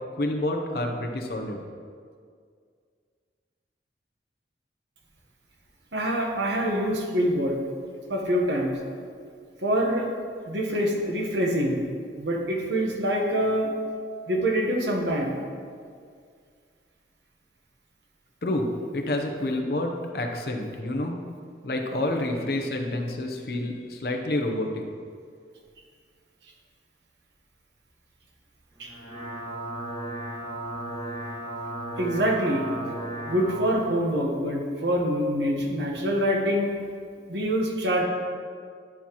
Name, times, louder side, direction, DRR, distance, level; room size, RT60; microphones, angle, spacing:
voice 1, 0.2-1.6 18.4-21.2 21.6-24.8, left 1 dB, 55° left, 3 dB, 0.8 m, -28 dB
voice 2, 5.9-7.5 8.1-8.7 9.6-10.1 10.5-11.8 12.2-13.7 14.3-15.4 28.8-28.9 32.0-32.7 33.3-36.7 37.3-38.0, equal, 70° right, 0 dB, 1.2 m, -25 dB
sound 1, 28.8-33.7, right 1 dB, 10° right, 1.7 m, -35 dB
11.0 x 5.7 x 3.0 m, 2.1 s
head